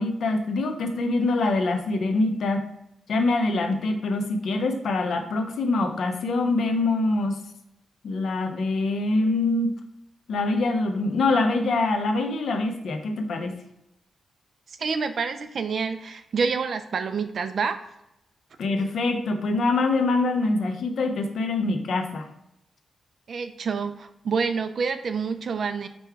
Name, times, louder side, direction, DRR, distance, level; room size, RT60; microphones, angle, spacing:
voice 1, 0.0-2.7 3.1-7.4 8.0-9.7 10.3-13.6 18.6-22.3, left 2 dB, 65° left, 5 dB, 0.6 m, -24 dB
voice 2, 14.8-17.8 23.3-25.9, right 5 dB, 50° right, 10 dB, 0.4 m, -27 dB
5.1 x 2.3 x 4.5 m, 0.83 s
wide cardioid pair, 140°, 0 cm